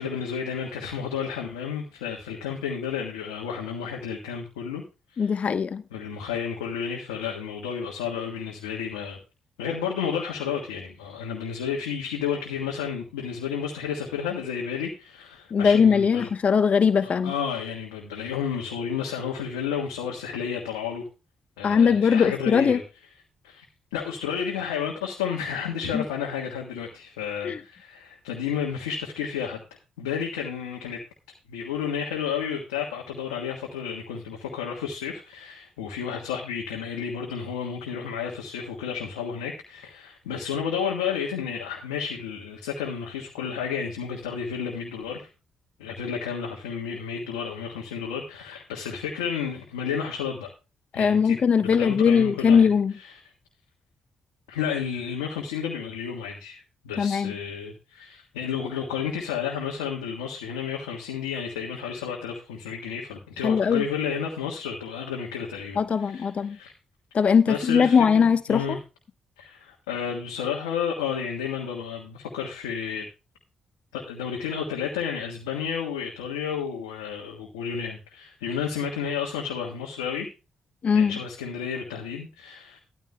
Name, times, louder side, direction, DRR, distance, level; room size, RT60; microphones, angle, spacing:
voice 1, 0.0-4.8 5.1-5.3 5.9-9.2 9.6-16.3 17.0-21.1 21.6-22.8 23.4-23.6 23.9-29.6 30.0-31.0 31.5-45.3 45.8-50.5 50.9-53.2 54.5-66.7 67.5-68.8 69.4-73.1 73.9-80.3 80.9-82.8, left 7 dB, 90° left, 1.4 m, -31 dB
voice 2, 5.2-5.8 15.5-17.3 21.6-22.8 25.9-26.0 27.4-27.6 50.9-52.9 57.0-57.3 63.4-63.8 65.8-66.6 67.1-68.8 80.8-81.2, left 6 dB, 55° left, 0.9 m, -20 dB
13.5 x 13.0 x 2.2 m
hypercardioid pair, 40°, 3 cm